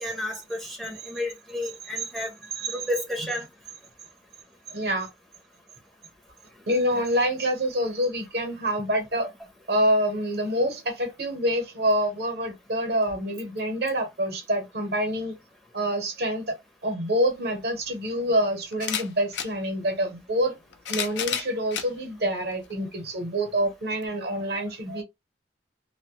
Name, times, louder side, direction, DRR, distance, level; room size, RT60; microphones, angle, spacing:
voice 1, 0.0-2.3 2.7-3.5 6.9-7.0, left 1 dB, ahead, 0.6 m, -32 dB
voice 2, 4.7-5.1 6.7-9.3 9.7-15.4 15.7-16.6 16.8-20.5 20.9-25.0, equal, 60° right, 0.8 m, -26 dB
sound 1, 17.3-17.4 18.7-19.5 20.5-21.9 22.6-22.7 24.0-24.1, left 8 dB, 80° left, 0.5 m, -31 dB
2.1 x 2.1 x 2.8 m
head